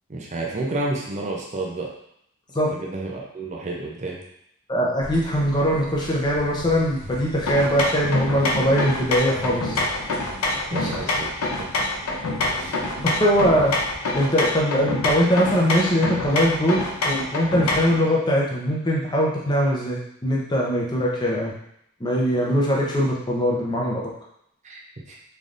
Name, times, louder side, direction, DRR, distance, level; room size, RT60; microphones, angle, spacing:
voice 1, 0.1-1.9 2.7-4.2 10.7-11.3 11.6-11.7 12.5-12.8 24.6-24.8 25.1-25.2, right 2 dB, 30° right, -2 dB, 0.5 m, -30 dB
voice 2, 4.7-9.8 10.7-10.9 13.0-13.7 14.1-21.5 22.0-24.0, equal, 20° left, -4 dB, 0.7 m, -21 dB
sound 1, 5.0-14.0, left 1 dB, 50° right, 1.2 m, -38 dB
sound 2, 7.5-18.0, left 2 dB, 85° left, 0.6 m, -26 dB
3.8 x 3.3 x 2.5 m, 0.74 s
head